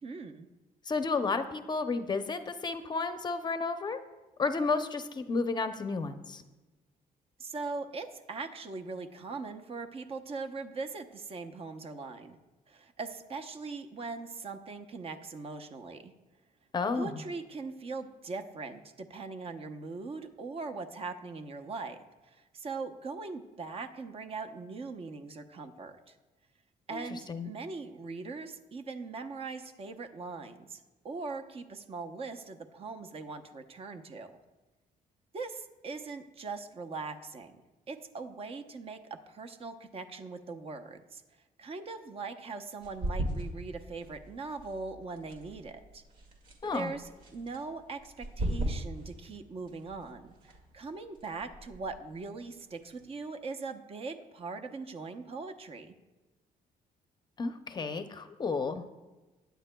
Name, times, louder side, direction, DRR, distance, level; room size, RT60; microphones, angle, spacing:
voice 1, 0.0-0.5 7.4-12.4 12.7-16.1 17.0-22.0 22.2-26.2 26.9-34.3 35.3-37.5 37.9-41.2 41.6-46.0 46.7-56.0, right 4 dB, 40° right, 7 dB, 0.8 m, -41 dB
voice 2, 0.9-4.0 4.4-6.4 16.7-17.2 26.9-27.5 46.6-46.9 57.4-58.9, left 4 dB, 30° left, 8 dB, 0.6 m, -32 dB
sound 1, 42.8-53.1, right 1 dB, 75° right, 2.1 m, -40 dB
21.0 x 9.2 x 2.3 m, 1.2 s
cardioid pair, 140°, 15 cm